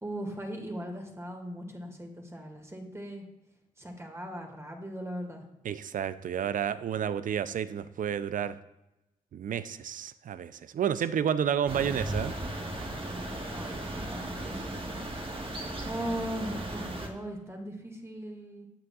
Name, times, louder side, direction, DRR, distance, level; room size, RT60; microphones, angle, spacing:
voice 1, 0.0-3.2 3.8-5.4 13.5-18.7, equal, 15° right, 2 dB, 2.1 m, -39 dB
voice 2, 5.6-8.6 9.3-12.3, right 8 dB, 65° right, 14 dB, 0.5 m, -30 dB
sound 1, 11.7-17.1, right 1 dB, 35° right, 1.5 m, -36 dB
11.5 x 6.9 x 2.4 m, 0.95 s
supercardioid pair, 45°, 15 cm